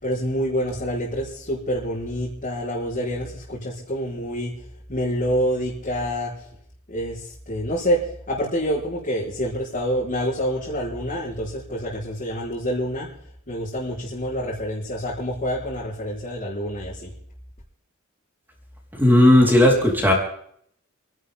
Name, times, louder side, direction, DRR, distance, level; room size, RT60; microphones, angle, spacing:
voice 1, 0.0-4.6 4.9-6.3 6.9-8.0 8.3-13.1 13.5-17.1, equal, 40° left, -8 dB, 4.6 m, -27 dB
voice 2, 19.0-20.1, left 1 dB, 10° right, -1 dB, 4.3 m, -15 dB
29.5 x 11.0 x 3.7 m, 0.66 s
head